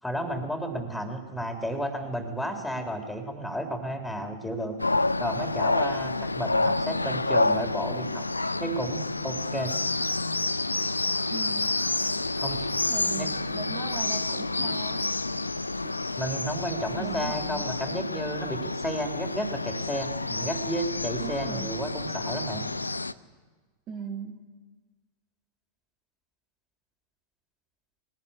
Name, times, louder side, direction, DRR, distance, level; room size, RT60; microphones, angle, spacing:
voice 1, 0.0-4.8 5.2-8.3 8.6-9.7 12.4-12.7 13.1-13.3 16.2-22.6, equal, 5° left, 5 dB, 3.6 m, -32 dB
sound 1, 4.8-23.1, left 2 dB, 80° left, 0.6 m, -29 dB
voice 2, 11.3-11.7 12.9-15.0 15.8-15.9 17.0-17.7 21.2-21.8 23.9-24.4, right 6 dB, 35° right, 3 dB, 2.4 m, -39 dB
22.0 x 18.5 x 9.9 m, 1.4 s
figure-of-eight pair, 90°, 0 cm